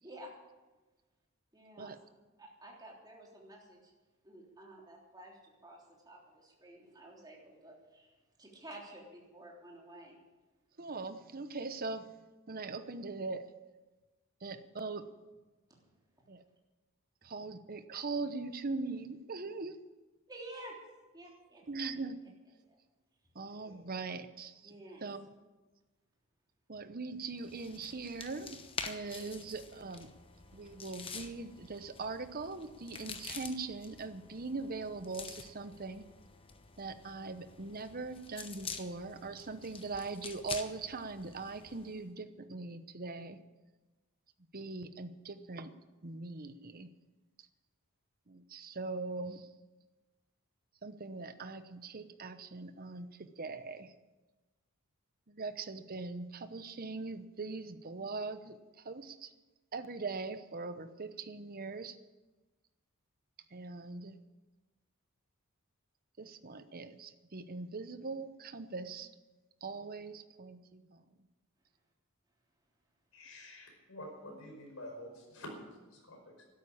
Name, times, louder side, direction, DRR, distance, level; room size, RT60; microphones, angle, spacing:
voice 1, 0.0-0.3 1.5-2.0 2.4-3.9 4.2-8.1 8.4-10.2 15.7-15.8 20.3-20.8 21.1-21.6 22.6-22.8 23.4-23.8 24.6-25.0, right 1 dB, 20° right, -2 dB, 3.4 m, -51 dB
voice 2, 10.8-12.1 12.5-13.5 14.4-15.1 16.3-16.4 17.2-19.8 21.7-22.3 23.3-24.7 25.0-25.3 26.7-28.6 28.8-30.1 30.5-36.1 36.8-43.4 44.5-45.7 46.0-46.9 48.3-49.5 50.8-53.9 55.3-59.3 59.7-62.0 63.5-64.2 66.2-69.1 69.6-71.0, right 3 dB, 45° right, 11 dB, 0.9 m, -41 dB
sound 1, 27.4-42.0, left 5 dB, 25° left, 1.0 m, -47 dB
voice 3, 73.1-76.4, left 1 dB, 70° left, 2 dB, 5.0 m, -48 dB
13.0 x 12.0 x 8.7 m, 1.2 s
head